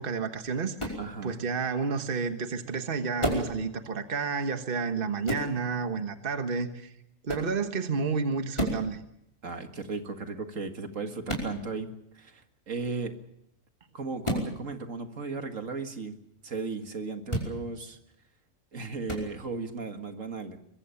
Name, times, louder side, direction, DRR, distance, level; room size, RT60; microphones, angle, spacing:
voice 1, 0.0-1.0 1.2-6.9 7.2-9.0, right 5 dB, 45° right, 7 dB, 1.5 m, -30 dB
sound 1, 0.8-1.1 3.2-3.5 5.3-5.5 7.3-7.5 8.5-8.9 11.3-11.5 14.2-14.5 17.3-17.5 19.1-19.3, equal, 20° left, 5.4 m, -30 dB
voice 2, 1.0-1.3 9.4-13.2 13.9-16.2 16.4-18.0 18.7-20.6, right 4 dB, 75° right, 6 dB, 2.3 m, -36 dB
23.5 x 22.5 x 7.1 m, 0.77 s
omnidirectional pair, 1.4 m